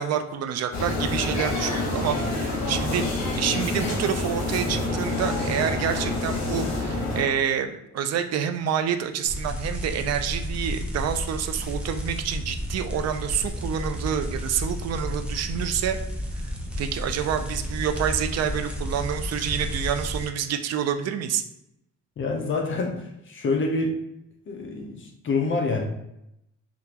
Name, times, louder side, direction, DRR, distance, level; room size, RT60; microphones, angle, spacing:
voice 1, 0.0-3.0 3.4-16.0 16.8-21.4, right 8 dB, 60° right, 8 dB, 0.4 m, -28 dB
sound 1, 0.7-7.2, left 2 dB, 65° left, 1.2 m, -27 dB
sound 2, 9.2-20.2, equal, 5° right, 0.6 m, -32 dB
voice 2, 22.2-23.9 24.5-25.8, left 3 dB, 40° left, 2 dB, 0.6 m, -27 dB
3.6 x 2.4 x 2.8 m, 0.82 s
cardioid pair, 125°, 30 cm